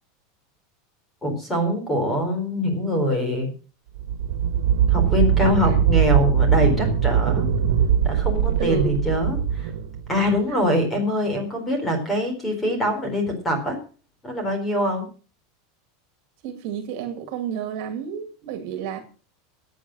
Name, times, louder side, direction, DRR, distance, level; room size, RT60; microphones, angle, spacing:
voice 1, 1.2-3.5 4.9-7.5 8.0-9.7 10.1-13.8 14.2-15.1, equal, 10° left, 4.4 m, -24 dB
sound 1, 4.0-10.4, right 8 dB, 80° right, 1.7 m, -21 dB
voice 2, 8.6-9.0 10.5-10.6 16.4-19.0, right 8 dB, 50° right, 2.4 m, -31 dB
13.5 x 9.2 x 6.3 m
supercardioid pair, 170°, 0 cm